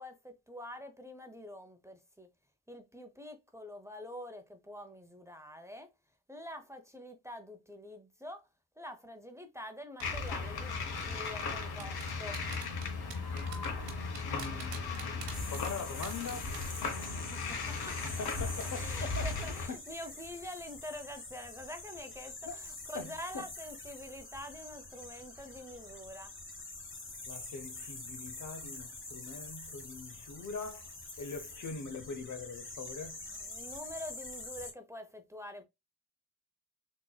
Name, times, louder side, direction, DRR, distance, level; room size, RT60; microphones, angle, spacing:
voice 1, 0.0-2.3 2.7-5.9 6.3-8.5 8.8-10.7 11.1-12.4 17.0-18.1 18.8-26.3 33.3-35.6, left 1 dB, 5° right, 0.7 m, -46 dB
sound 1, 10.0-19.7, left 4 dB, 60° left, 1.1 m, -37 dB
sound 2, 10.0-10.3 11.0-17.2 17.5-17.7 18.1-18.2 18.6-18.9 19.1-19.4 19.7-19.9, right 7 dB, 75° right, 1.0 m, -46 dB
voice 2, 14.3-16.4 18.2-19.3 19.7-19.8 22.4-22.5 22.9-23.4 27.3-30.9 31.2-33.2, left 4 dB, 45° left, 0.7 m, -42 dB
sound 3, 15.3-34.7, left 2 dB, 30° left, 1.3 m, -46 dB
3.7 x 3.1 x 2.2 m
hypercardioid pair, 40°, 42 cm